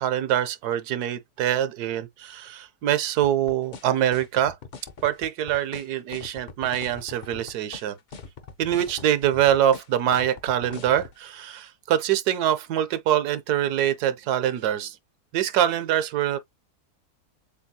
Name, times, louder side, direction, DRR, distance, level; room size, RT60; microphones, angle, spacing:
voice 1, 0.0-4.6 5.0-8.0 8.6-15.0 15.3-16.4, right 11 dB, 85° right, 1.2 m, -24 dB
sound 1, 3.2-11.1, left 5 dB, 60° left, 0.4 m, -41 dB
6.9 x 2.3 x 2.7 m
omnidirectional pair, 1.7 m